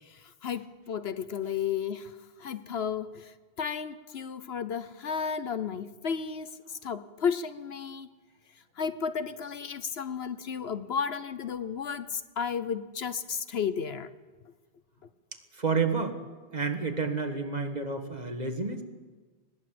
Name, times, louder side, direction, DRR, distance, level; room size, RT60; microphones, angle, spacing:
voice 1, 0.0-6.5 6.8-8.1 8.8-14.1, left 6 dB, 65° left, 1.0 m, -33 dB
voice 2, 15.5-16.2 16.5-18.8, right 4 dB, 35° right, 1.8 m, -30 dB
20.5 x 17.5 x 7.7 m
omnidirectional pair, 1.2 m